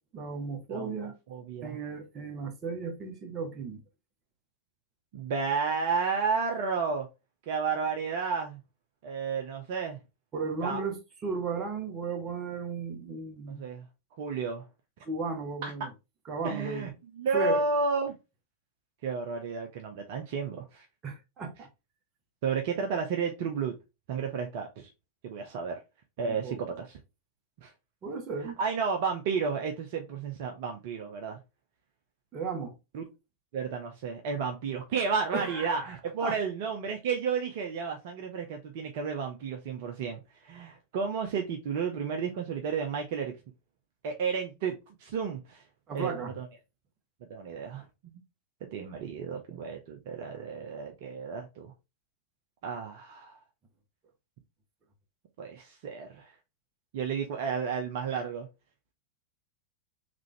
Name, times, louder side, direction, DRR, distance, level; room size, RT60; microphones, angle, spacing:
voice 1, 0.1-1.2 1.6-3.8 10.3-13.6 15.0-15.9 16.3-16.9 17.3-17.6 21.0-21.7 26.2-26.6 28.0-28.6 32.3-32.7 35.3-36.4 45.9-46.3, right 5 dB, 25° right, 1.1 m, -35 dB
voice 2, 1.3-1.8 5.1-7.1 7.5-8.6 9.0-10.0 10.6-10.8 13.5-13.8 14.2-14.6 15.6-15.9 16.4-18.1 19.0-20.9 22.4-23.7 24.1-24.9 25.2-25.8 26.2-26.9 27.6-27.7 28.6-31.4 32.9-33.1 33.5-43.3 44.0-45.6 45.9-46.5 47.3-47.9 48.6-51.7 52.6-53.4 55.4-56.3 56.9-58.5, right 5 dB, 50° right, 0.7 m, -32 dB
3.8 x 3.3 x 3.2 m
figure-of-eight pair, 90°, 0 cm